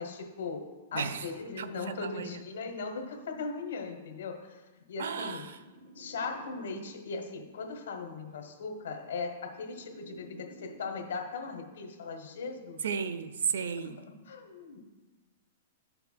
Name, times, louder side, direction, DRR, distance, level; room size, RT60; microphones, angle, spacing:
voice 1, 0.0-4.6 4.9-5.5 5.9-12.8 13.8-14.8, left 4 dB, 80° left, 4 dB, 1.1 m, -39 dB
voice 2, 0.9-1.3 1.6-2.4 5.0-5.6 6.8-6.9 12.8-14.0, right 6 dB, 85° right, 11 dB, 0.4 m, -34 dB
sound 1, 5.2-7.3 8.3-11.3, right 1 dB, 70° right, 0.8 m, -54 dB
12.5 x 6.8 x 2.2 m, 1.2 s
supercardioid pair, 180°, 0 cm